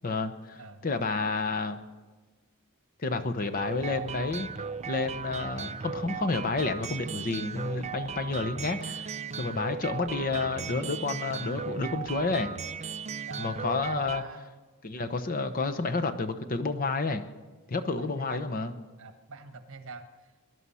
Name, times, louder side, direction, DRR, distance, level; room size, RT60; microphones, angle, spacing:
voice 1, 0.0-1.8 3.0-4.5 4.9-9.1 9.4-12.5 13.4-14.2 14.8-17.2 17.7-18.7, left 3 dB, 40° left, 9 dB, 0.8 m, -30 dB
voice 2, 0.5-0.9 13.3-13.5 14.1-14.6 15.7-15.8 18.0-18.4 19.0-20.5, right 3 dB, 65° right, 8 dB, 1.3 m, -45 dB
sound 1, 3.5-14.2, right 6 dB, 30° right, 0.4 m, -37 dB
21.5 x 11.0 x 5.6 m, 1.3 s
head